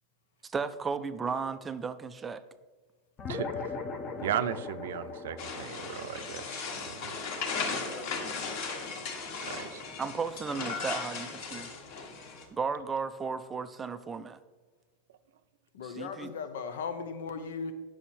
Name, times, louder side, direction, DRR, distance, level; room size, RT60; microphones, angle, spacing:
voice 1, 0.4-2.4 10.0-11.7 12.5-14.4 15.8-16.3, right 5 dB, 10° right, 12 dB, 0.3 m, -34 dB
sound 1, 3.2-8.0, left 4 dB, 20° left, 0.7 m, -40 dB
voice 2, 3.3-3.7 4.2-7.2 9.4-9.8, right 10 dB, 75° right, 13 dB, 0.5 m, -36 dB
sound 2, 5.4-12.4, left 4 dB, 45° left, 1.5 m, -37 dB
voice 3, 15.7-17.7, left 5 dB, 85° left, 9 dB, 1.0 m, -37 dB
9.1 x 6.3 x 4.3 m, 1.4 s
supercardioid pair, 165°, 0 cm